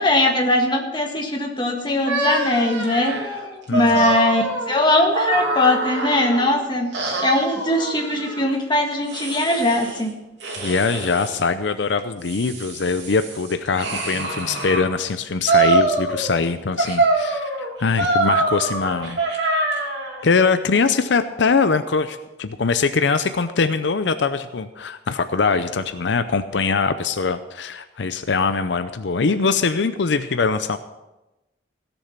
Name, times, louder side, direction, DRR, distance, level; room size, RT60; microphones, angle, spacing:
voice 1, 0.0-3.1 3.7-6.9 7.2-10.2, left 1 dB, 25° left, 2 dB, 1.6 m, -20 dB
sound 1, 2.0-6.5 6.9-8.5 9.1-10.0 10.4-11.4 12.0-14.9 15.5-16.4 16.8-20.2, right 2 dB, 80° right, 2.7 m, -24 dB
voice 2, 3.7-4.1 10.6-19.2 20.2-30.8, left 4 dB, 80° left, 10 dB, 0.6 m, -22 dB
16.5 x 7.1 x 5.8 m, 1.0 s
head